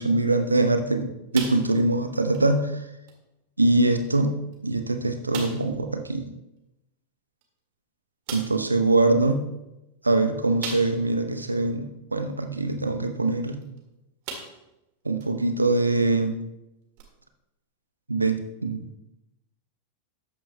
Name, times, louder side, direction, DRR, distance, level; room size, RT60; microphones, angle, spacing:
voice 1, 0.0-2.8 3.6-4.4 4.6-6.2 8.3-9.5 10.0-13.6 15.0-16.3 18.1-18.9, right 2 dB, 80° right, 7 dB, 0.8 m, -23 dB
sound 1, 1.3-2.0 2.3-2.5 3.1-3.2 4.0-4.1 4.5-4.6 5.3-5.8 7.4-7.5 8.3-8.7 10.6-11.2 11.7-11.8 13.6-13.8 14.2-14.8 15.2-15.3 17.0-17.1, right 5 dB, 45° right, 1.8 m, -37 dB
13.0 x 8.9 x 2.2 m, 0.92 s
figure-of-eight pair, 90°, 0 cm